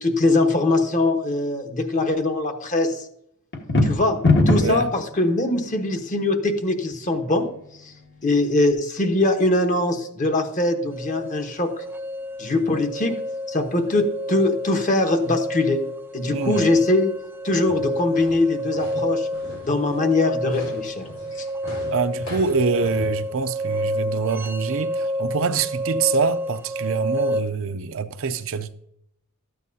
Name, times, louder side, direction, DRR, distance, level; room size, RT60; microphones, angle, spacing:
voice 1, 0.0-3.0 3.8-4.2 4.5-7.5 7.8-7.9 8.2-11.8 12.4-13.1 13.5-15.8 16.1-17.1 17.4-19.3 19.6-21.1 21.4-21.5, left 2 dB, 35° left, 1.1 m, -22 dB
sound 1, 3.5-4.9, left 2 dB, 50° left, 1.5 m, -18 dB
voice 2, 4.6-4.9 16.3-16.6 21.9-28.7, right 5 dB, 60° right, 0.5 m, -25 dB
sound 2, 10.9-27.4, equal, 10° right, 0.3 m, -29 dB
sound 3, 17.6-23.1, left 1 dB, 75° left, 4.3 m, -39 dB
13.0 x 9.0 x 2.7 m
head